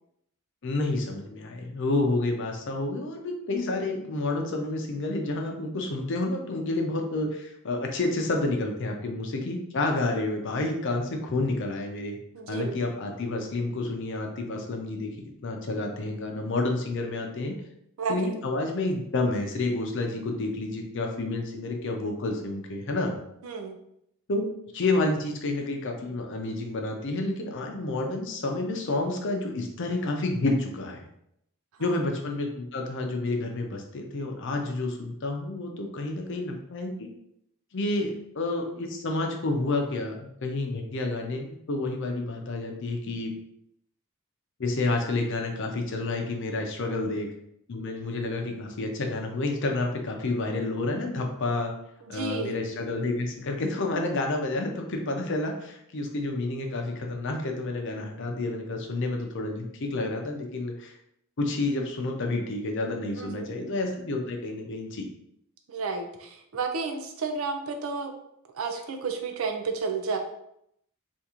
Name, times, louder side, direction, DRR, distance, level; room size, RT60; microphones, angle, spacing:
voice 1, 0.6-12.2 12.5-15.1 15.4-17.5 18.1-23.2 24.3-24.5 24.7-31.0 31.8-37.1 37.7-43.3 44.6-47.3 47.7-51.7 52.1-61.0 61.4-65.1, left 2 dB, 60° left, 3 dB, 0.6 m, -29 dB
voice 2, 12.3-12.8 18.0-18.3 23.4-23.8 31.8-32.0 46.8-47.1 52.0-52.5 63.1-63.6 65.7-68.1 68.5-70.2, right 4 dB, 70° right, 5 dB, 0.5 m, -32 dB
3.6 x 2.5 x 2.9 m, 0.76 s
head